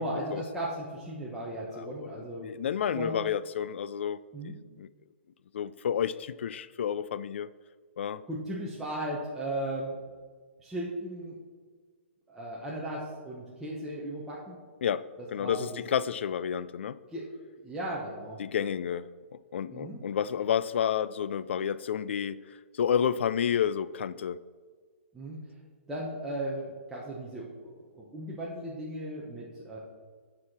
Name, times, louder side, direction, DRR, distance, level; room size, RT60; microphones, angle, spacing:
voice 1, 0.0-2.5 2.9-3.3 4.3-4.5 8.3-10.0 10.6-11.4 12.3-14.6 15.4-15.8 17.1-17.2 17.6-18.4 19.7-20.0 25.1-25.4 25.9-29.8, right 1 dB, 5° right, -7 dB, 1.0 m, -36 dB
voice 2, 1.8-4.2 4.8-4.9 5.5-7.5 8.0-8.2 14.8-17.0 18.4-24.4, left 8 dB, 65° left, 17 dB, 0.4 m, -30 dB
8.4 x 4.9 x 5.9 m, 1.6 s
hypercardioid pair, 160°, 7 cm